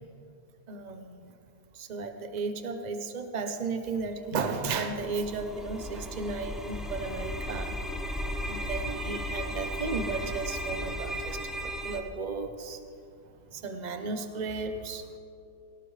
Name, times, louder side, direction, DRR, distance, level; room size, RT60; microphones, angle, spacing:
voice 1, 0.7-1.3 1.7-7.7 8.5-12.8 13.5-15.2, right 4 dB, 60° right, 6 dB, 0.4 m, -34 dB
sound 1, 4.2-12.0, equal, ahead, 0.9 m, -35 dB
23.0 x 18.0 x 3.4 m, 2.6 s
omnidirectional pair, 2.3 m